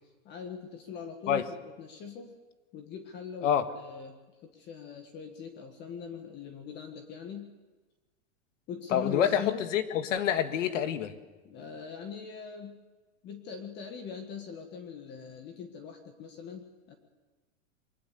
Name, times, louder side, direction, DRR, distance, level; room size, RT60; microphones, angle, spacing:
voice 1, 0.3-2.3 2.7-7.5 8.7-9.6 11.4-12.8 13.2-17.0, left 6 dB, 25° left, 5 dB, 1.7 m, -41 dB
voice 2, 8.9-11.1, left 9 dB, 65° left, 9 dB, 1.9 m, -27 dB
23.0 x 19.5 x 6.9 m, 1.2 s
supercardioid pair, 160°, 41 cm